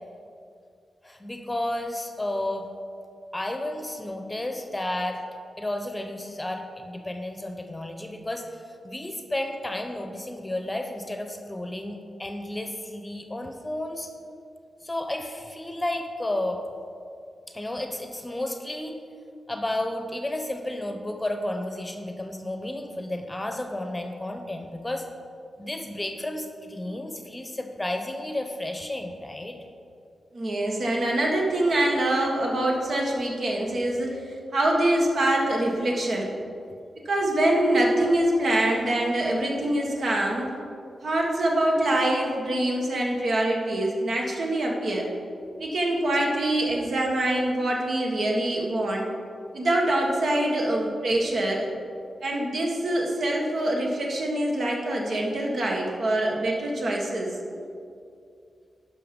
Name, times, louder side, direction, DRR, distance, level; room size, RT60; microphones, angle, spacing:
voice 1, 1.0-2.7 3.3-5.2 5.6-14.1 14.8-16.6 17.5-19.0 19.5-25.1 25.6-29.6, left 1 dB, 15° left, 5 dB, 0.9 m, -32 dB
voice 2, 30.3-34.2 34.5-36.3 37.0-40.6 41.0-45.1 45.6-49.1 49.5-51.7 52.2-57.4, right 1 dB, 65° right, -1 dB, 1.7 m, -24 dB
11.5 x 5.6 x 5.3 m, 2.5 s
cardioid pair, 90°, 0 cm